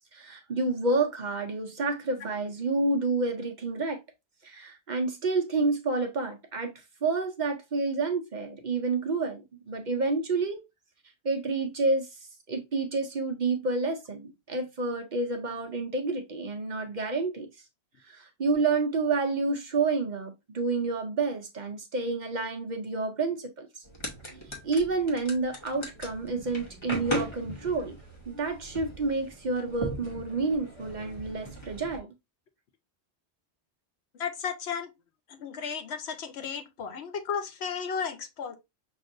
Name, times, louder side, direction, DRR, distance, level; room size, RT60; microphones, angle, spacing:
voice 1, 0.1-4.0 4.4-6.7 7.0-10.6 11.2-12.1 12.5-17.5 18.1-23.8 24.6-28.0 28.3-32.1, right 3 dB, 50° right, 0.7 m, -29 dB
sound 1, 23.8-32.0, equal, 30° left, 0.9 m, -38 dB
voice 2, 34.2-34.9 35.3-38.5, left 6 dB, 75° left, 1.0 m, -34 dB
5.8 x 2.5 x 2.5 m
omnidirectional pair, 1.1 m